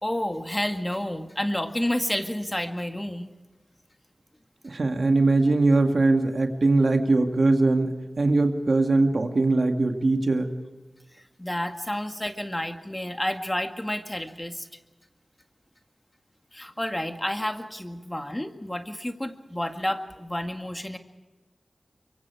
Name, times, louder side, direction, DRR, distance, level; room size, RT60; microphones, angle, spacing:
voice 1, 0.0-3.3 11.1-14.7 16.5-21.0, left 1 dB, 20° left, 6 dB, 2.0 m, -30 dB
voice 2, 4.6-10.5, right 2 dB, 65° right, 4 dB, 2.1 m, -21 dB
24.0 x 24.0 x 4.8 m, 1.2 s
cardioid pair, 45°, 0 cm